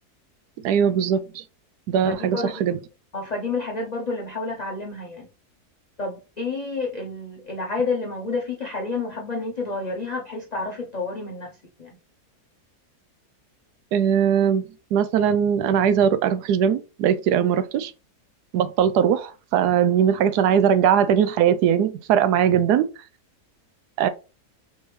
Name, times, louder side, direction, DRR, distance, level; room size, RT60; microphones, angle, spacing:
voice 1, 0.6-1.4 1.9-2.8 13.9-17.9 18.5-22.9 24.0-24.1, right 8 dB, 85° right, 1.1 m, -20 dB
voice 2, 2.0-2.6 3.1-5.3 6.0-12.0, left 3 dB, 70° left, 0.4 m, -30 dB
4.3 x 3.2 x 3.2 m
omnidirectional pair, 1.7 m